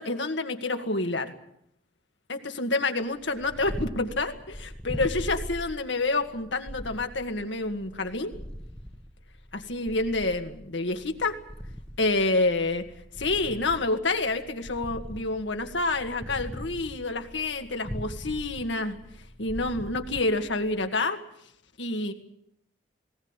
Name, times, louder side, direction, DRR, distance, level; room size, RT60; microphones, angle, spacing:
voice 1, 0.0-1.3 2.3-8.3 9.5-11.4 12.0-12.8 13.2-19.0 19.4-21.2 21.8-22.1, left 2 dB, 75° left, 6 dB, 2.1 m, -28 dB
Purr, 3.2-20.9, equal, 5° left, 1.1 m, -41 dB
19.5 x 18.0 x 9.0 m, 0.74 s
head